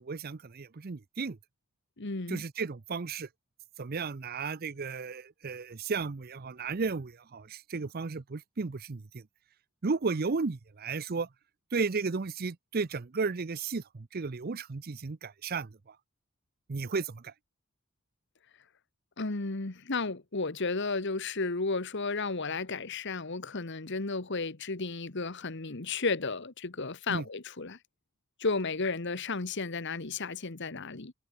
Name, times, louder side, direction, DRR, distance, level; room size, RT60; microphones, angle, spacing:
voice 1, 0.0-1.4 2.3-3.3 3.8-9.2 9.8-11.3 11.7-15.7 16.7-17.3 27.1-27.2, right 4 dB, 45° right, 0.6 m, -34 dB
voice 2, 2.0-2.4 19.2-27.8 28.4-31.1, left 3 dB, 55° left, 1.4 m, -33 dB
head